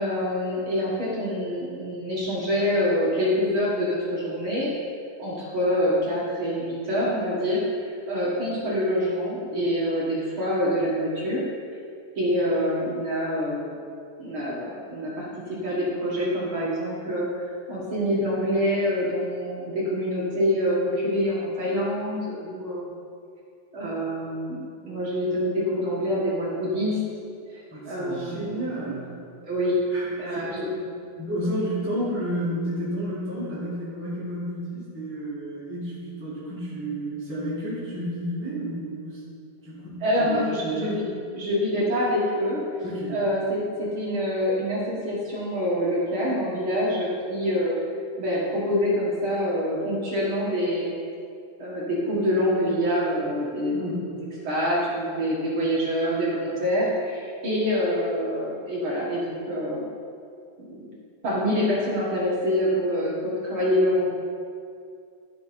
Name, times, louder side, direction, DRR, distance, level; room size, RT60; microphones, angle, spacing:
voice 1, 0.0-4.7 5.2-11.4 12.2-13.7 14.2-22.9 23.7-27.0 27.5-27.6 27.9-28.6 29.4-29.8 30.2-30.7 40.0-41.0 41.4-42.6 43.1-47.7 48.2-50.9 51.6-54.0 54.4-59.8 60.6-60.9 61.2-64.1, equal, 45° right, -7 dB, 1.8 m, -26 dB
voice 2, 27.7-29.1 29.9-39.2 39.6-40.9 42.8-43.2 53.7-54.1, right 1 dB, 5° right, -11 dB, 1.0 m, -31 dB
12.5 x 6.0 x 4.3 m, 2.3 s
omnidirectional pair, 4.1 m